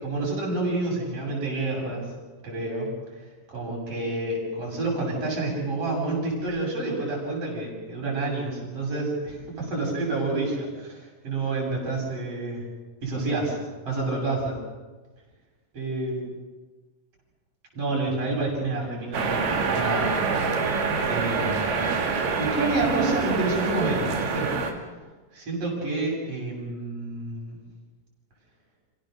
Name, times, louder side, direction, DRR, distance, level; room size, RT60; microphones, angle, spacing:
voice 1, 0.0-2.1 2.4-2.9 3.5-12.6 13.0-13.6 13.9-14.6 15.7-16.2 17.7-19.4 19.7-20.1 21.1-21.6 22.4-24.5 25.3-27.6, right 2 dB, 40° right, -2 dB, 8.1 m, -28 dB
sound 1, 19.1-24.7, right 4 dB, 70° right, 3.9 m, -26 dB
29.5 x 17.0 x 6.8 m, 1.3 s
omnidirectional pair, 4.0 m